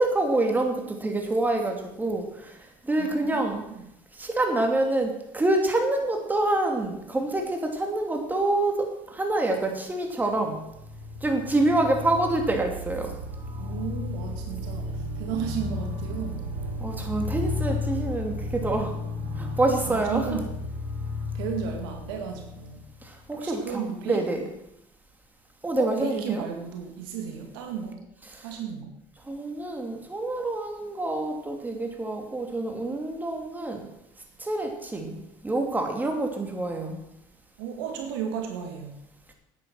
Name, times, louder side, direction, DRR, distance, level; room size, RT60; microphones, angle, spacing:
voice 1, 0.0-3.7 4.1-10.6 11.2-13.1 16.8-19.0 19.4-20.4 23.0-24.5 25.6-26.4 28.3-28.5 29.2-33.9 34.4-37.0, right 2 dB, 15° right, 3 dB, 2.6 m, -27 dB
voice 2, 3.0-3.8 13.6-16.4 19.7-20.5 21.3-22.8 23.3-24.3 25.8-28.0 28.4-29.0 37.6-39.0, right 7 dB, 90° right, 3 dB, 2.0 m, -34 dB
sound 1, 10.3-23.2, left 2 dB, 65° right, 2.4 m, -33 dB
9.6 x 9.1 x 6.1 m, 0.81 s
supercardioid pair, 90°, 12 cm